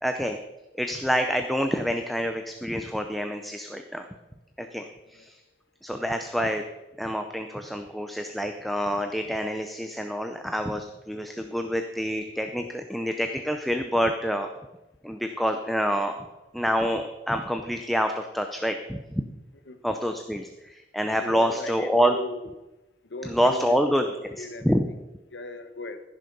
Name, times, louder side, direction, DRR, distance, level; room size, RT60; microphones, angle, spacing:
voice 1, 0.0-0.4 0.8-4.1 4.6-5.3 5.8-6.6 7.0-14.5 15.0-16.3 16.5-19.2 19.8-22.1 23.3-24.1 24.4-24.9, equal, ahead, 6 dB, 0.6 m, -27 dB
voice 2, 21.2-22.5 23.1-24.9 25.3-26.0, left 2 dB, 85° left, 10 dB, 1.0 m, -38 dB
15.0 x 6.4 x 5.4 m, 1.0 s
head